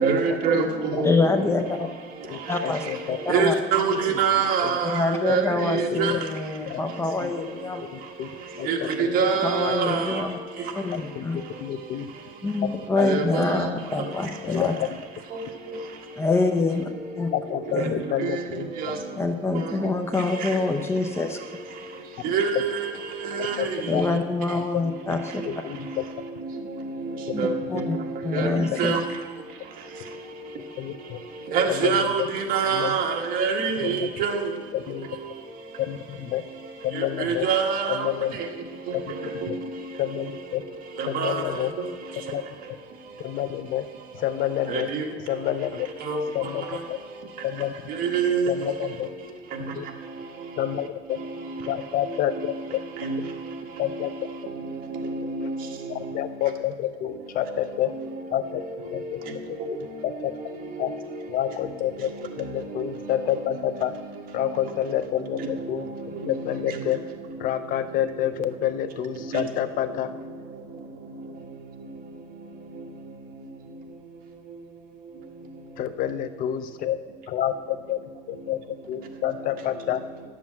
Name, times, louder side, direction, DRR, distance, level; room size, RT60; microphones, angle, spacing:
voice 1, 0.0-0.7 0.9-1.1 3.3-4.9 5.2-5.4 5.7-6.1 8.7-8.8 9.1-10.0 13.0-13.2 22.3-22.5 23.4-23.5 27.4-27.5 28.3-28.5 28.8-29.0 31.5-32.2 32.5-33.0 33.3-34.4 37.2-38.0 41.2-41.3 44.7-44.8 46.1-46.2 48.1-48.4, right 6 dB, 55° right, 1.7 m, -23 dB
voice 2, 1.0-1.9 2.5-3.5 4.8-7.8 9.4-10.4 10.7-11.4 12.4-14.8 16.2-16.9 17.2-17.3 17.7-18.0 19.2-21.4 23.8-25.4 27.3-28.0 28.2-28.9, left 3 dB, 15° left, 0.7 m, -26 dB
voice 3, 2.3-3.2 4.3-4.8 6.1-6.2 6.7-6.8 7.2-7.3 8.2-8.3 8.6-9.1 9.7-9.8 11.2-11.3 11.6-12.1 13.0-13.1 14.4-14.7 17.3-18.7 23.6-24.0 24.5-24.6 25.1-25.2 25.4-26.0 27.3-27.5 28.7-28.8 30.8-31.2 31.7-32.1 32.7-33.0 33.8-34.1 34.7-35.1 35.9-36.4 36.8-37.5 37.9-38.4 38.9-39.6 40.0-40.6 41.0-41.7 42.3-42.4 43.2-43.8 44.1-44.9 45.3-45.9 46.3-47.0 47.4-47.7 48.5-49.1 49.8-49.9 50.6-51.2 51.7-52.8 53.8-54.1 55.9-57.9 58.3-58.6 58.9-59.2 59.7-60.3 60.8-60.9 61.3-63.9 64.3-65.9 66.3-67.0 67.4-70.1 75.8-77.0 77.3-77.5 77.9-78.0 78.3-78.6 78.9-80.0, left 11 dB, 55° left, 0.6 m, -28 dB
11.0 x 7.7 x 7.4 m
cardioid pair, 150°, 18 cm